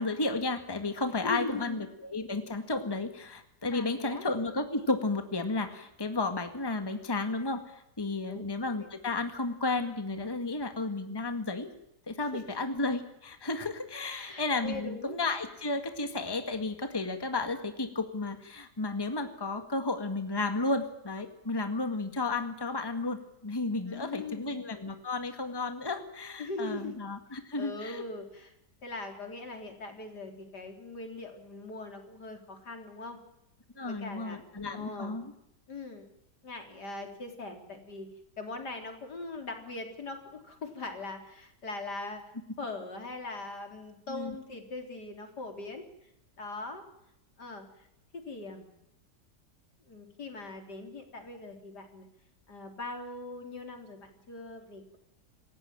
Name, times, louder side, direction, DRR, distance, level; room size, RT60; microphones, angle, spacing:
voice 1, 0.0-11.7 12.1-28.0 33.8-35.2 44.1-44.3, left 3 dB, 15° left, 7 dB, 1.9 m, -33 dB
voice 2, 1.2-1.9 3.7-4.2 8.3-8.4 8.8-8.9 12.3-12.5 14.0-15.2 23.8-24.6 26.4-27.0 27.6-28.5 28.8-33.2 33.8-34.4 34.7-35.2 35.7-36.1 36.4-38.1 38.4-42.2 42.6-46.1 46.4-46.8 47.4-47.9 48.1-48.7 49.9-52.1 52.5-55.0, left 2 dB, 75° left, 5 dB, 4.3 m, -41 dB
28.0 x 15.0 x 9.0 m, 0.82 s
omnidirectional pair, 1.8 m